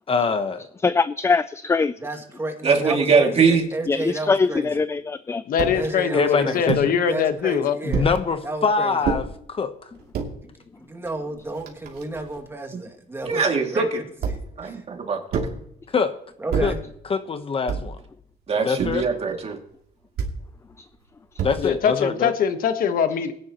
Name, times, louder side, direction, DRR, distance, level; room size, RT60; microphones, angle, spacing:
voice 1, 0.1-0.7 6.1-6.8 7.8-9.9 15.9-16.1 16.6-16.7 17.1-18.0 18.6-19.1 21.4-22.3, left 5 dB, 35° left, 9 dB, 1.0 m, -24 dB
voice 2, 0.8-1.9 3.9-5.4, left 4 dB, 15° left, 14 dB, 0.4 m, -22 dB
voice 3, 2.0-4.7 5.7-6.6 7.1-8.1 8.4-9.0 10.4-10.5 10.8-13.4 13.7-14.8 16.4-16.8, right 2 dB, 15° right, 3 dB, 2.3 m, -32 dB
voice 4, 2.6-3.7 12.7-12.8 13.3-13.8 14.6-15.4 18.5-19.6, right 5 dB, 35° right, 3 dB, 2.5 m, -21 dB
voice 5, 5.5-7.8 21.6-23.3, left 7 dB, 55° left, 9 dB, 1.3 m, -22 dB
sound 1, 5.6-5.8 6.7-6.9 7.9-8.2 9.0-9.2 9.9-10.3 11.1-11.2 11.4-12.4 14.2-14.6 15.3-15.6 16.5-16.8 17.7-18.0 18.8-19.1 20.2-20.4 21.4-21.8, right 5 dB, 65° right, 2.8 m, -27 dB
19.5 x 10.5 x 3.0 m, 0.71 s
cardioid pair, 110°, 17 cm